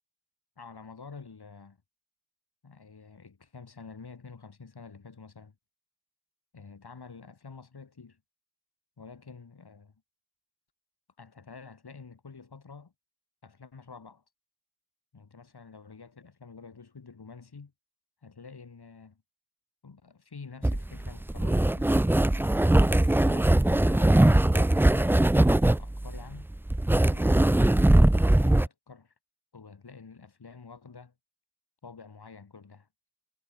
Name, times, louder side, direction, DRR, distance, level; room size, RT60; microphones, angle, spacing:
voice 1, 0.6-1.8 2.6-5.5 6.5-8.2 9.0-9.9 11.2-12.9 13.4-14.2 15.1-17.7 18.2-19.2 19.8-22.0 22.6-26.5 27.0-29.1 29.5-31.1 31.8-32.9, left 5 dB, 60° left, 5.7 m, -48 dB
sound 1, 20.6-28.7, right 1 dB, 5° right, 0.3 m, -21 dB
wide cardioid pair, 90°, 44 cm